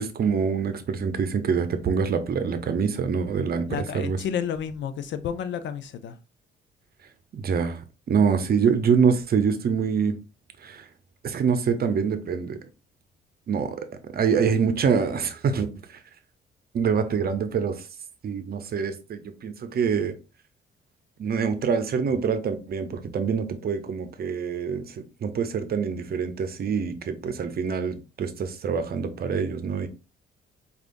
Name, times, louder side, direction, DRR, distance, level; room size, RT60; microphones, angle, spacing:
voice 1, 0.0-4.2 7.3-7.8 8.1-10.2 10.6-10.9 11.2-12.6 13.5-13.9 14.1-15.7 16.7-17.8 18.2-20.1 21.2-29.9, right 6 dB, 50° right, 0.7 m, -25 dB
voice 2, 3.7-6.2, left 8 dB, 65° left, 0.5 m, -31 dB
5.0 x 2.4 x 2.5 m
cardioid pair, 90°, 20 cm